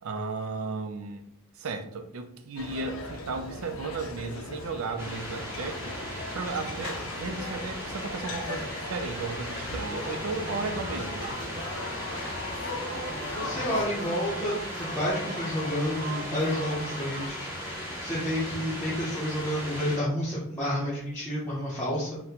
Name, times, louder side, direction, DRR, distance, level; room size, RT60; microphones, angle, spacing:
voice 1, 0.0-1.2 1.6-6.0 6.3-11.3 13.7-14.1, right 4 dB, 80° right, 6 dB, 0.4 m, -35 dB
sound 1, 2.6-13.8, left 2 dB, 80° left, 0.5 m, -39 dB
sound 2, 5.0-20.0, equal, 10° right, 1.1 m, -37 dB
sound 3, 9.8-17.3, equal, 50° right, 1.2 m, -40 dB
voice 2, 13.3-22.2, equal, 5° left, -10 dB, 0.7 m, -30 dB
4.0 x 2.1 x 2.8 m, 0.74 s
head